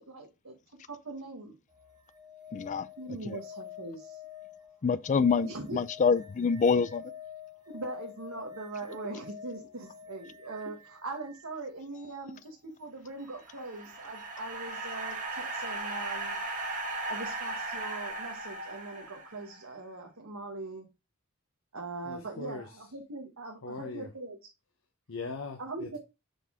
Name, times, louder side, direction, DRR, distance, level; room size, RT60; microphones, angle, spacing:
voice 1, 0.0-1.6 3.0-4.2 5.4-5.8 7.7-16.4 17.1-20.9 21.7-24.4 25.6-26.0, right 2 dB, 75° right, 1.3 m, -41 dB
sound 1, 1.7-11.5 13.8-13.9, left 7 dB, 20° right, 1.3 m, -48 dB
voice 2, 2.5-2.9 3.3-3.4 4.8-7.0, left 5 dB, 35° left, 0.4 m, -26 dB
sound 2, 13.2-19.6, right 2 dB, 35° right, 1.5 m, -37 dB
voice 3, 22.0-22.7 23.6-24.1 25.1-26.0, left 3 dB, 70° left, 0.9 m, -40 dB
6.8 x 4.1 x 3.6 m
head